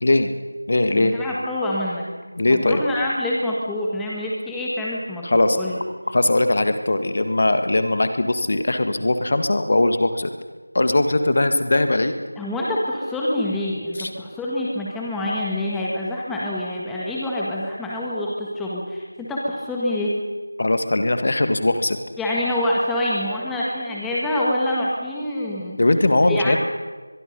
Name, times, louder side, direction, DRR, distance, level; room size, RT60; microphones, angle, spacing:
voice 1, 0.0-0.3 0.7-1.1 2.4-2.8 5.2-5.6 6.1-10.3 10.7-12.2 14.0-14.1 20.6-22.0 25.8-26.6, left 2 dB, 45° left, 8 dB, 1.7 m, -20 dB
voice 2, 0.9-2.1 2.5-5.8 12.4-20.2 22.2-25.8 26.3-26.6, left 1 dB, 5° left, -5 dB, 1.6 m, -26 dB
23.0 x 23.0 x 5.4 m, 1.3 s
figure-of-eight pair, 170°, 0 cm